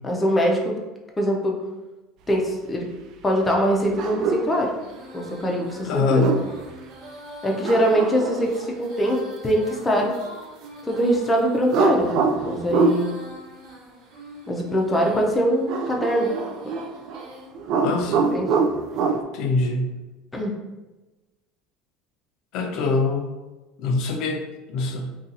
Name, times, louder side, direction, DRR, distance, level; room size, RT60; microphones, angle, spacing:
voice 1, 0.0-0.7 1.2-1.5 2.3-2.9 3.2-4.7 5.1-6.3 7.4-10.1 10.9-13.1 14.5-16.3 16.6-16.7 18.3-18.5 20.3-20.5, equal, 10° left, 0 dB, 0.5 m, -22 dB
Female singing, 3.8-17.5, left 1 dB, 70° right, 1.1 m, -44 dB
sound 1, 4.0-4.5 6.0-6.7 7.6-8.7 11.7-13.0 15.7-17.3 17.5-19.2, right 4 dB, 50° right, 0.3 m, -24 dB
voice 2, 5.8-6.4 17.8-18.3 19.3-20.0 22.5-23.3 23.8-25.2, left 3 dB, 60° left, 4 dB, 0.5 m, -24 dB
2.7 x 2.3 x 3.8 m, 1.1 s
cardioid pair, 145°, 0 cm